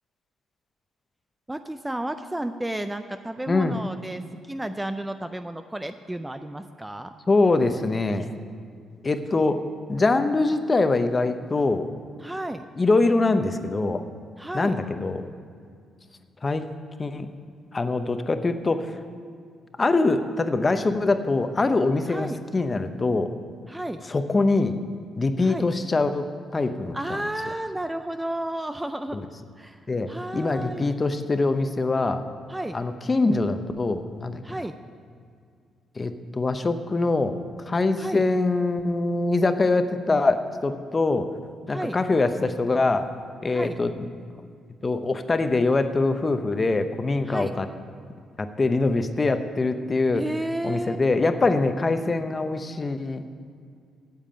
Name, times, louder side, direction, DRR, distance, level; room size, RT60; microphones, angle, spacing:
voice 1, 1.5-7.1 12.2-12.7 14.4-14.8 17.1-17.3 22.1-22.4 23.7-24.0 25.4-25.7 26.9-29.2 29.6-30.9 32.5-32.8 34.4-34.8 38.0-38.2 41.7-42.0 43.5-43.8 47.3-47.6 50.1-51.0, right 1 dB, 10° right, 9 dB, 0.4 m, -32 dB
voice 2, 3.5-3.8 7.3-8.4 9.0-9.6 9.9-11.9 12.8-14.0 14.5-15.3 16.4-16.6 17.0-17.3 17.7-19.0 19.8-23.3 24.1-24.7 25.2-26.3 26.5-27.2 29.1-29.3 29.9-32.2 32.7-34.4 36.0-37.4 37.7-41.3 41.7-43.1 43.4-43.9 44.8-47.7 48.4-50.2 50.6-53.2, left 3 dB, 30° left, 9 dB, 0.7 m, -23 dB
9.1 x 7.3 x 8.6 m, 2.2 s
cardioid pair, 90°, 0 cm